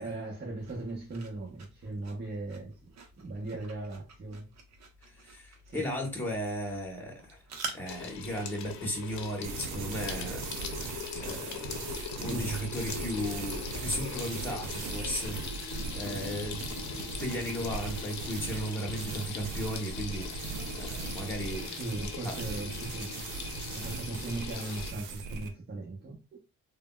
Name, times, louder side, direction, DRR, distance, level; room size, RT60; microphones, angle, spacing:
voice 1, 0.0-4.5 5.6-5.9 12.2-12.4 21.6-23.1 23.7-26.4, right 2 dB, 35° right, 0.9 m, -38 dB
sound 1, 0.6-8.1, right 4 dB, 60° right, 0.8 m, -47 dB
voice 2, 5.1-7.4 7.7-10.9 11.2-11.7 12.2-20.5 20.7-21.7 22.2-22.4, equal, 5° left, 1.0 m, -36 dB
Water tap faucet / Sink (filling or washing), 7.9-24.9, left 6 dB, 70° left, 0.7 m, -41 dB
sound 2, 9.4-25.5, right 5 dB, 90° right, 0.5 m, -39 dB
3.4 x 2.2 x 2.2 m
cardioid pair, 90°, 30 cm